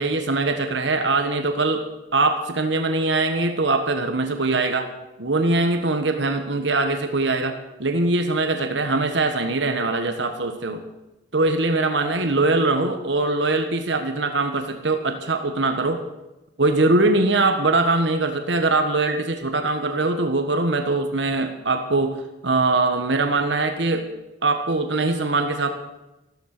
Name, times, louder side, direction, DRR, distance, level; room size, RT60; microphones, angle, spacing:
voice 1, 0.0-1.8 2.1-4.9 5.2-10.8 11.3-16.0 16.6-24.1 24.4-25.7, right 2 dB, 65° right, 6 dB, 1.5 m, -22 dB
15.0 x 13.0 x 6.7 m, 0.98 s
head